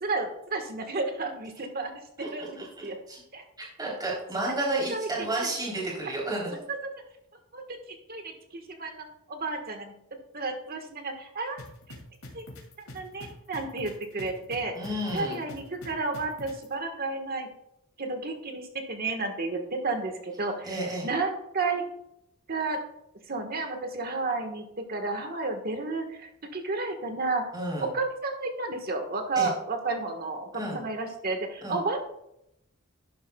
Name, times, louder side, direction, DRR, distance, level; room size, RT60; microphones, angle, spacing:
voice 1, 0.0-1.9 2.2-2.6 2.8-3.0 3.3-3.4 4.9-5.1 6.5-6.6 7.5-7.6 8.1-9.9 10.3-11.6 12.3-12.4 12.8-14.7 15.1-17.5 18.0-21.8 22.5-22.8 23.3-27.5 27.8-32.0, right 3 dB, 45° right, 5 dB, 1.4 m, -32 dB
voice 2, 2.2-3.2 3.6-6.6 14.8-15.4 20.6-21.1 27.5-27.9 29.4-29.5 30.5-30.8 31.6-31.8, right 1 dB, 20° right, -3 dB, 3.5 m, -32 dB
sound 1, 11.6-16.7, left 1 dB, 80° left, 2.5 m, -44 dB
11.5 x 10.0 x 2.3 m, 0.80 s
head